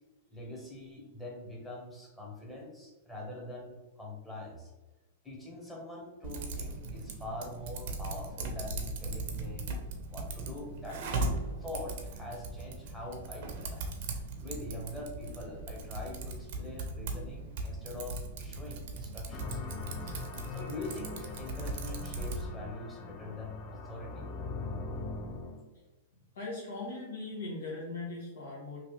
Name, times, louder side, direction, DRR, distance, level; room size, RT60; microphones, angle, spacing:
voice 1, 0.3-4.7 5.2-9.8 10.1-11.0 11.6-13.8 14.4-19.6 20.0-20.2 20.5-24.3, left 1 dB, 5° left, -3 dB, 1.0 m, -43 dB
Typing, 6.2-22.5, right 2 dB, 60° right, 0.6 m, -39 dB
sound 1, 19.3-25.6, left 3 dB, 35° left, 0.5 m, -41 dB
voice 2, 26.3-28.8, left 2 dB, 75° left, -5 dB, 0.8 m, -39 dB
3.2 x 2.5 x 3.0 m, 1.2 s
hypercardioid pair, 120°, 0 cm